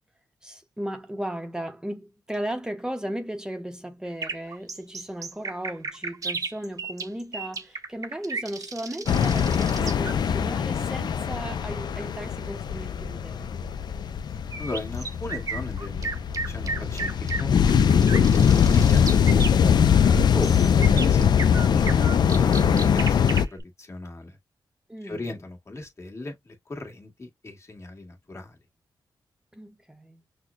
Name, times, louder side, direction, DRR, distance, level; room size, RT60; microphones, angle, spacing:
voice 1, 0.4-13.7 24.9-25.4 29.5-30.2, right 1 dB, 10° right, 0.7 m, -36 dB
sound 1, 4.0-10.1 14.5-23.6, right 4 dB, 45° right, 0.7 m, -34 dB
sound 2, 9.1-23.5, left 7 dB, 60° left, 0.4 m, -22 dB
voice 2, 14.6-17.5 18.5-24.4 25.0-28.6, left 2 dB, 35° left, 1.5 m, -37 dB
6.0 x 2.1 x 2.4 m
cardioid pair, 85°, 8 cm